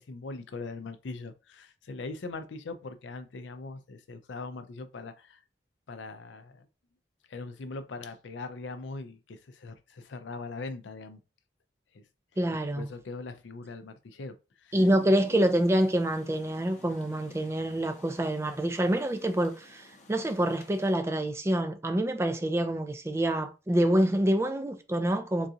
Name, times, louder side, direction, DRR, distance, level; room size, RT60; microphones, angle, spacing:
voice 1, 0.0-5.4 5.9-6.7 7.3-11.2 11.9-12.0 12.8-14.9 24.0-24.1, left 3 dB, 85° left, 0.5 m, -41 dB
voice 2, 12.4-12.9 14.7-25.5, right 1 dB, 15° right, 0.3 m, -26 dB
Rain, 14.8-20.9, left 1 dB, 40° left, 0.7 m, -51 dB
3.8 x 2.4 x 2.7 m
head